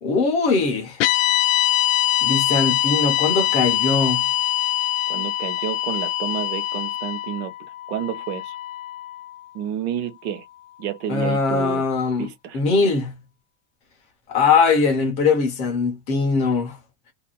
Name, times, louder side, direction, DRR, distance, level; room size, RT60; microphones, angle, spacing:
voice 1, 0.0-1.0 2.2-4.3 11.1-12.3 12.5-13.2 14.3-16.8, left 4 dB, 20° left, 0.4 m, -21 dB
sound 1, 1.0-9.3, left 13 dB, 75° left, 0.5 m, -23 dB
voice 2, 5.1-7.5 7.9-8.5 9.5-10.4 10.8-11.8 12.2-12.6, right 9 dB, 55° right, 0.8 m, -30 dB
2.5 x 2.0 x 2.9 m
supercardioid pair, 175°, 38 cm